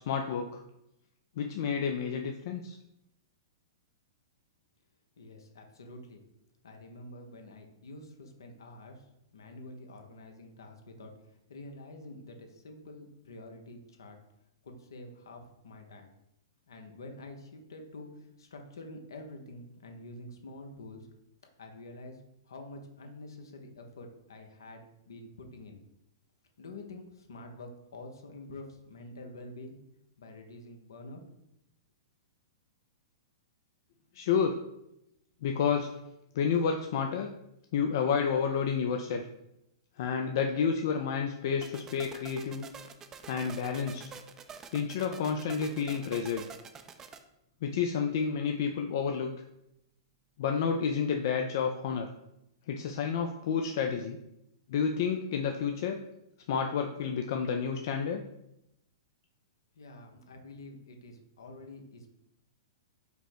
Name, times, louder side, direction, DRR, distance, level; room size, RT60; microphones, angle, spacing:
voice 1, 0.1-0.6 1.4-2.8 34.1-34.5 35.4-35.9 36.3-37.3 37.7-39.3 40.0-42.6 43.3-44.0 44.7-46.4 47.6-49.3 50.4-52.1 52.7-54.2 54.7-56.0 56.5-58.2, left 6 dB, 60° left, 4 dB, 0.4 m, -30 dB
voice 2, 5.2-6.2 6.6-9.1 9.3-11.1 11.5-14.2 14.6-16.1 16.7-21.1 21.6-22.2 22.5-25.8 26.6-29.8 30.2-31.2 59.8-62.1, left 2 dB, 80° left, 4 dB, 0.7 m, -47 dB
sound 1, 41.6-47.2, right 6 dB, 20° right, 0.4 m, -47 dB
5.0 x 2.1 x 4.5 m, 0.84 s
hypercardioid pair, 115°, 2 cm